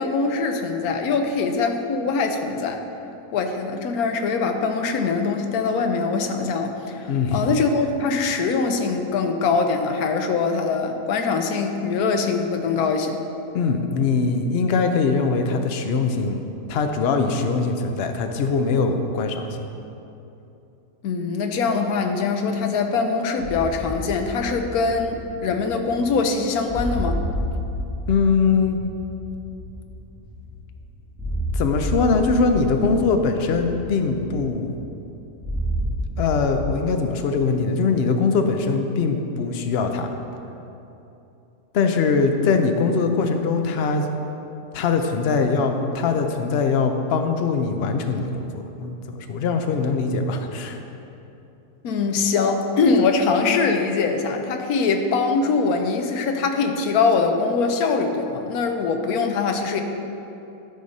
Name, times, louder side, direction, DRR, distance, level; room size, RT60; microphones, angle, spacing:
voice 1, 0.0-2.8 3.3-13.2 21.0-27.2 51.8-59.8, left 4 dB, 80° left, 5 dB, 1.2 m, -23 dB
voice 2, 7.1-7.5 13.5-19.6 28.1-28.8 31.5-34.8 36.2-40.1 41.7-44.1 44.7-50.8, left 4 dB, 55° left, 5 dB, 0.7 m, -22 dB
sound 1, 23.4-36.6, equal, 5° right, 1.9 m, -31 dB
12.0 x 5.0 x 4.1 m, 2.9 s
omnidirectional pair, 1.6 m